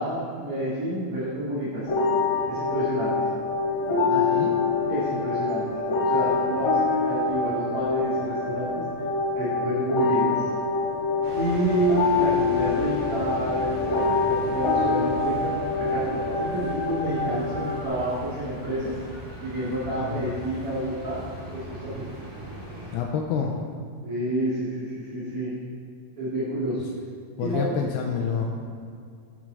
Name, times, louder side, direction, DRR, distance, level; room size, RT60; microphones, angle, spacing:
voice 1, 0.0-1.8 2.5-3.1 4.9-5.6 6.0-8.8 9.3-10.3 11.3-18.9 19.4-21.2 21.5-22.0 24.0-25.5 26.2-26.8 27.4-27.7, right 1 dB, 40° right, -10 dB, 2.6 m, -29 dB
sound 1, 1.9-17.9, left 4 dB, 70° left, 3.8 m, -25 dB
voice 2, 4.1-4.6 20.1-20.3 22.9-23.5 27.4-28.5, left 6 dB, 85° left, 1 dB, 2.7 m, -28 dB
sound 2, 11.2-23.0, equal, 80° right, 5.0 m, -39 dB
13.5 x 6.5 x 3.9 m, 2.3 s
omnidirectional pair, 4.6 m